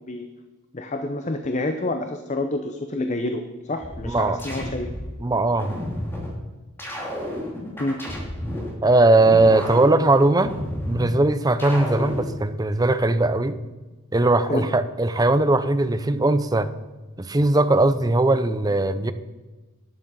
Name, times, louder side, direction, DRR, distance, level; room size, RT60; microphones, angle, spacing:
voice 1, 0.7-4.9 7.8-8.0 14.5-14.7, left 2 dB, 30° left, 7 dB, 0.7 m, -28 dB
sound 1, 3.8-5.1 5.6-6.3 6.8-8.7 9.2-11.1 11.6-12.3, left 1 dB, 10° left, 2.6 m, -31 dB
voice 2, 4.1-4.4 5.2-5.8 8.8-10.5 10.8-13.6 14.1-16.7 17.2-19.1, right 2 dB, 15° right, 12 dB, 0.5 m, -19 dB
12.5 x 9.2 x 5.5 m, 1.2 s
head